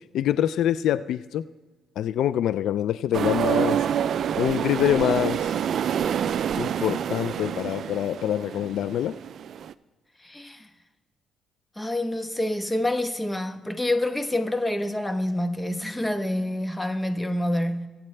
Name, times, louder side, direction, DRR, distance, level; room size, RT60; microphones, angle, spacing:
voice 1, 0.1-1.4 2.0-3.8 4.4-5.5 6.5-9.2, left 11 dB, 75° left, 0.3 m, -25 dB
sound 1, 3.1-9.7, right 9 dB, 65° right, 0.4 m, -27 dB
voice 2, 10.2-10.7 11.8-17.9, left 1 dB, 10° left, 1.0 m, -27 dB
22.5 x 8.7 x 3.3 m
cardioid pair, 90°, 0 cm